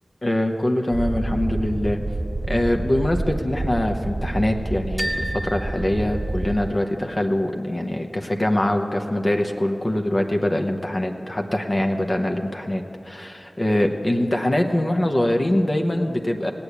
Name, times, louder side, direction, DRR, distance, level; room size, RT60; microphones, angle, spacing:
voice 1, 0.2-2.0 2.4-16.5, left 1 dB, 45° left, 3 dB, 1.0 m, -23 dB
sound 1, 0.9-6.7, right 2 dB, 40° right, 0.4 m, -28 dB
sound 2, 5.0-6.9, equal, 5° right, 1.1 m, -33 dB
17.5 x 8.6 x 8.1 m, 3.0 s
cardioid pair, 40°, 0 cm